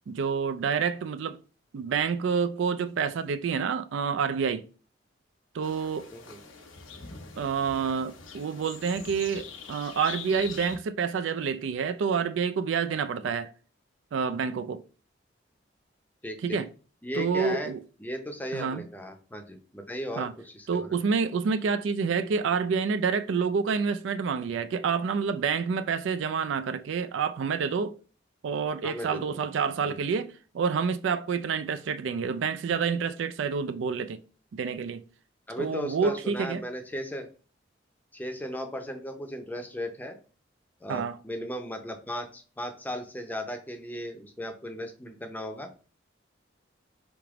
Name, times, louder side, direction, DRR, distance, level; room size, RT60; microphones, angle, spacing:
voice 1, 0.1-1.4 1.7-4.7 5.5-6.1 7.4-13.5 14.1-14.8 16.4-16.7 17.1-17.8 18.5-18.8 20.2-20.3 20.7-27.9 28.4-34.2 34.5-35.0 35.6-36.6 40.9-41.2, right 6 dB, 70° right, 0.3 m, -28 dB
sound 1, 5.6-10.8, left 5 dB, 80° left, 0.9 m, -43 dB
voice 2, 16.2-16.6 17.0-17.7 18.0-21.0 28.8-29.4 29.8-30.0 35.5-37.3 38.1-40.2 40.8-45.7, equal, 10° left, 0.6 m, -36 dB
3.5 x 2.9 x 4.7 m
head